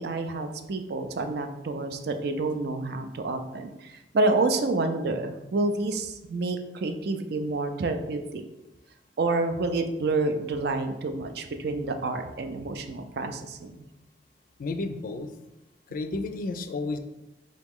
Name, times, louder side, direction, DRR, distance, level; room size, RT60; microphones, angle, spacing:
voice 1, 0.0-8.2 9.2-13.8, right 3 dB, 65° right, 7 dB, 0.4 m, -28 dB
voice 2, 14.6-15.3 15.9-17.0, left 3 dB, 50° left, 8 dB, 0.3 m, -32 dB
3.8 x 3.0 x 3.6 m, 0.96 s
head